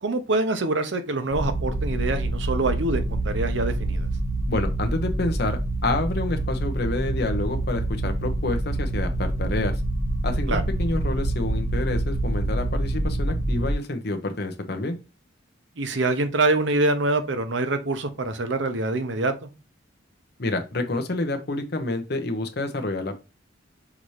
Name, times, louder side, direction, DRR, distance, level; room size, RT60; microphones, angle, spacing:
voice 1, 0.0-4.1 10.5-10.6 15.8-19.3, right 2 dB, 65° right, 8 dB, 0.7 m, -25 dB
sound 1, 1.3-13.7, right 1 dB, 30° right, 1.0 m, -26 dB
voice 2, 4.5-9.8 10.2-15.0 20.4-23.2, left 2 dB, 50° left, 6 dB, 0.8 m, -28 dB
5.9 x 2.7 x 3.2 m, 0.28 s
head